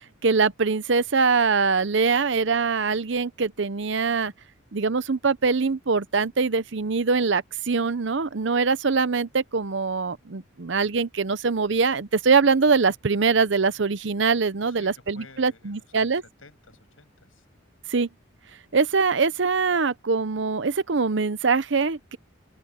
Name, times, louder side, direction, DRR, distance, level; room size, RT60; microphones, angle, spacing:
voice 1, 0.2-4.3 4.7-16.2 17.9-18.1 18.7-22.2, right 4 dB, 65° right, 0.7 m, -23 dB
voice 2, 14.6-17.5, left 3 dB, 85° left, 7.0 m, -53 dB
open air
head